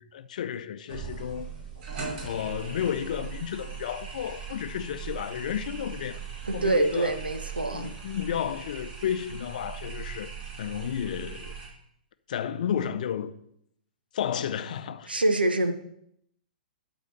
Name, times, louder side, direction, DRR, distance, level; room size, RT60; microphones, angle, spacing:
voice 1, 0.0-1.5 2.2-6.3 6.5-7.2 7.7-10.3 10.6-11.5 12.3-13.3 14.1-15.1, left 9 dB, 55° left, 0.6 m, -32 dB
sound 1, 0.9-11.7, right 6 dB, 45° right, 3.8 m, -40 dB
voice 2, 6.5-7.9 15.1-15.7, right 2 dB, 85° right, 1.0 m, -25 dB
11.5 x 4.3 x 6.2 m
figure-of-eight pair, 110°, 5 cm